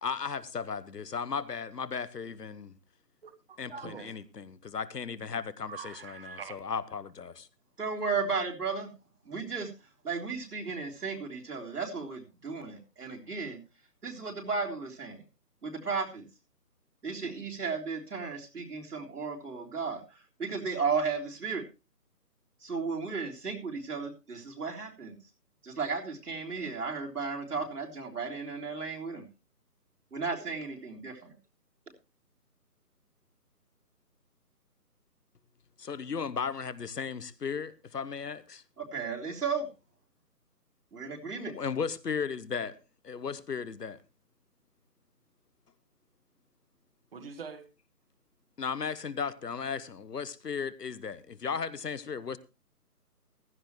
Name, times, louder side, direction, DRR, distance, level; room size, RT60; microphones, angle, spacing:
voice 1, 0.0-2.8 3.6-7.5 35.8-38.6 41.5-42.8 43.0-44.0 48.6-52.4, left 6 dB, 80° left, 1.2 m, -36 dB
voice 2, 3.2-4.2 5.7-6.6 47.1-47.7, right 6 dB, 35° right, 1.5 m, -44 dB
voice 3, 7.8-8.9 9.3-9.7 10.0-13.6 14.0-15.2 15.6-16.3 17.0-21.6 22.6-25.2 25.6-29.2 30.1-31.3 38.8-39.7 40.9-41.5, right 5 dB, 70° right, 3.7 m, -34 dB
15.5 x 12.5 x 3.1 m
figure-of-eight pair, 155°, 47 cm